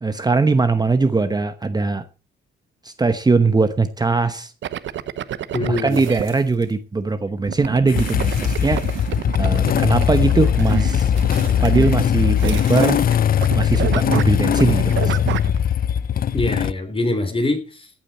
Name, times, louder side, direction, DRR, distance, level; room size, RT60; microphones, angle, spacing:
voice 1, 0.0-2.0 2.8-4.5 5.7-8.9 9.4-11.1 11.6-13.0 13.5-15.2, right 3 dB, 20° right, 1.0 m, -20 dB
sound 1, 4.6-6.3 7.5-13.1 13.4-15.6, right 11 dB, 70° right, 1.0 m, -28 dB
voice 2, 5.5-6.0 16.3-17.9, left 2 dB, 25° left, 3.8 m, -23 dB
sound 2, 5.9-6.7 7.9-13.4 13.6-13.7, right 9 dB, 90° right, 2.5 m, -37 dB
Motorcycle / Engine starting, 7.9-16.7, left 9 dB, 45° left, 0.6 m, -20 dB
16.0 x 8.7 x 4.4 m
cardioid pair, 90°, 20 cm